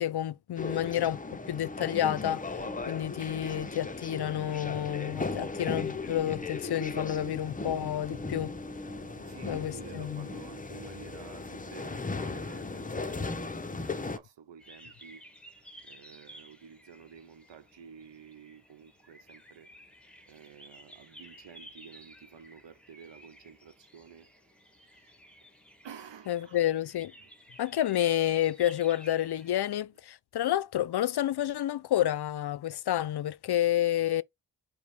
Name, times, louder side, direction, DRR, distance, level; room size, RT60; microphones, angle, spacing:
voice 1, 0.0-2.4 2.9-8.5 9.5-10.3 26.3-27.1 27.6-34.2, left 12 dB, 60° left, 0.5 m, -29 dB
sound 1, 0.6-14.2, left 3 dB, 20° left, 0.6 m, -37 dB
sound 2, 2.5-10.2, right 3 dB, 30° right, 2.5 m, -52 dB
voice 2, 5.2-5.6 9.3-15.2 15.8-19.7 20.3-24.3 24.7-25.1 25.8-26.7 27.2-27.3 28.2-28.3, right 7 dB, 75° right, 0.9 m, -51 dB
sound 3, 14.6-29.6, right 1 dB, ahead, 1.1 m, -54 dB
5.2 x 2.3 x 4.3 m
wide cardioid pair, 110°, 44 cm